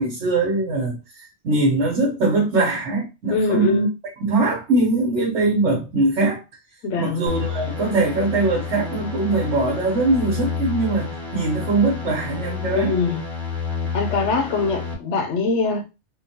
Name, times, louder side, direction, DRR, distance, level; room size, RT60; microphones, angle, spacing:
voice 1, 0.0-3.9 4.2-6.4 7.0-13.0, right 2 dB, 70° right, 1.2 m, -21 dB
voice 2, 3.3-3.9 6.8-7.2 12.7-13.2 13.9-15.8, left 4 dB, 70° left, 0.9 m, -22 dB
sound 1, 7.3-14.9, left 5 dB, ahead, 0.8 m, -29 dB
3.7 x 2.2 x 2.8 m
omnidirectional pair, 1.3 m